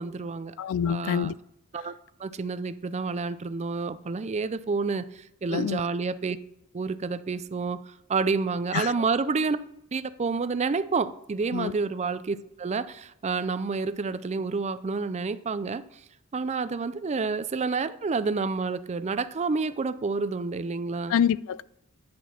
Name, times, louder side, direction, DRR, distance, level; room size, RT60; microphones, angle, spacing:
voice 1, 0.0-0.6 0.9-1.3 1.7-1.9 2.2-6.4 6.7-9.6 9.9-15.8 16.3-21.2, right 4 dB, 30° right, 0.4 m, -29 dB
voice 2, 0.6-1.3 5.5-5.8 8.7-8.9 11.5-11.7 21.1-21.6, left 8 dB, 65° left, 0.3 m, -26 dB
10.5 x 5.9 x 4.3 m
head